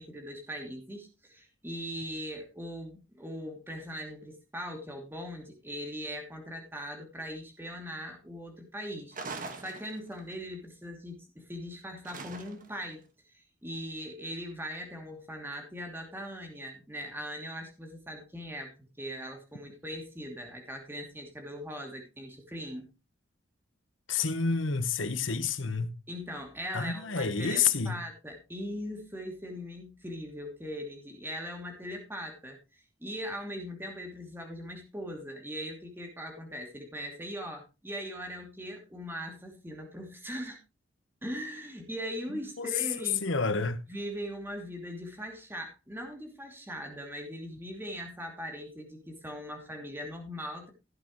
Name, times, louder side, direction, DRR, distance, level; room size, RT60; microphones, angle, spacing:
voice 1, 0.0-13.0 13.3-22.9 26.1-40.6 41.2-43.3 43.9-50.7, equal, 10° right, 2.7 m, -40 dB
sound 1, 9.1-10.3 12.0-12.8, right 3 dB, 45° right, 1.7 m, -41 dB
voice 2, 24.1-25.9 26.7-27.9 42.6-42.7 43.2-43.8, left 5 dB, 80° left, 1.2 m, -29 dB
16.0 x 8.7 x 3.1 m
head